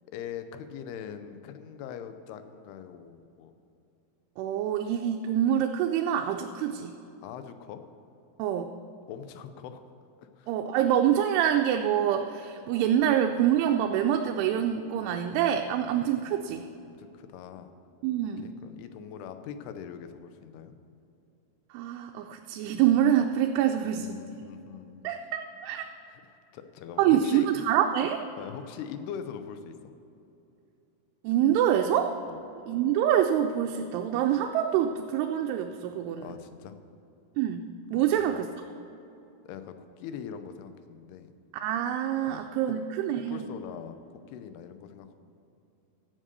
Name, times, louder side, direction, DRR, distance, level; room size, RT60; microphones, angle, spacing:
voice 1, 0.1-3.5 7.2-7.8 9.1-9.8 10.2-10.5 15.8-15.9 16.9-17.7 18.4-20.8 23.8-25.1 26.1-27.6 28.4-29.9 32.3-32.4 36.2-36.8 38.0-38.4 39.5-41.3 42.2-42.7 43.1-45.2, left 8 dB, 85° left, 9 dB, 2.7 m, -42 dB
voice 2, 4.4-6.9 8.4-8.7 10.5-16.7 18.0-18.5 21.7-24.1 25.0-25.9 27.0-28.2 31.2-32.2 32.7-36.3 37.4-38.7 41.5-43.5, right 10 dB, 90° right, 4 dB, 2.6 m, -26 dB
13.0 x 7.3 x 6.7 m, 2.8 s
omnidirectional pair, 4.6 m